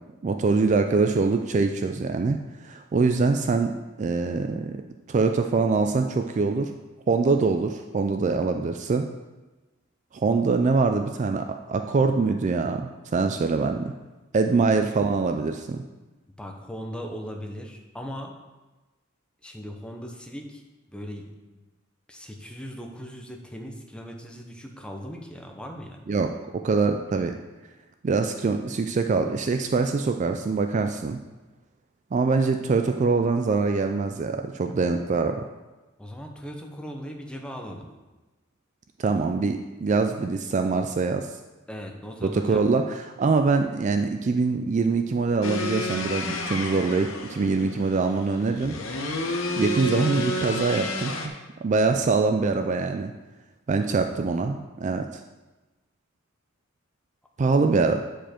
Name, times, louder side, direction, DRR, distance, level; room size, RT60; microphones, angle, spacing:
voice 1, 0.2-4.8 5.1-6.7 7.1-9.1 10.1-13.9 14.3-15.8 26.1-27.4 28.0-31.2 32.1-35.4 39.0-41.3 42.2-48.8 49.6-51.3 51.6-53.1 53.7-55.2 57.4-58.0, right 4 dB, 35° right, 6 dB, 0.3 m, -24 dB
voice 2, 16.4-18.3 19.4-20.6 20.9-21.3 22.1-26.1 36.0-37.9 41.7-42.7 53.8-54.1, equal, 5° left, 2 dB, 0.8 m, -38 dB
sound 1, 45.4-51.3, left 1 dB, 70° left, 1.0 m, -31 dB
8.9 x 5.0 x 4.4 m, 1.1 s
head